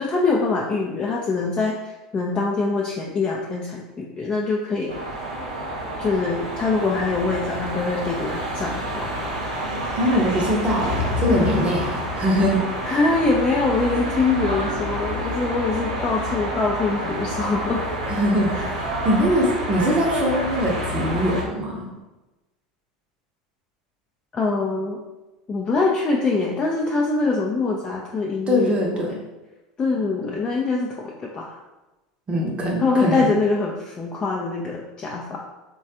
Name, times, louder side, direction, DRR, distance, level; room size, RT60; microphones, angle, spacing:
voice 1, 0.0-5.1 6.0-9.3 11.3-11.6 12.8-17.9 18.5-18.6 24.3-25.0 25.5-28.8 29.8-31.6 32.8-35.5, left 3 dB, 30° left, -2 dB, 0.4 m, -24 dB
sound 1, 4.9-21.4, equal, 85° right, 0.7 m, -28 dB
voice 2, 9.9-12.6 18.1-21.9 28.5-29.2 32.3-33.3, equal, 30° right, -1 dB, 0.7 m, -22 dB
3.1 x 2.2 x 2.7 m, 1.1 s
hypercardioid pair, 85°, 4 cm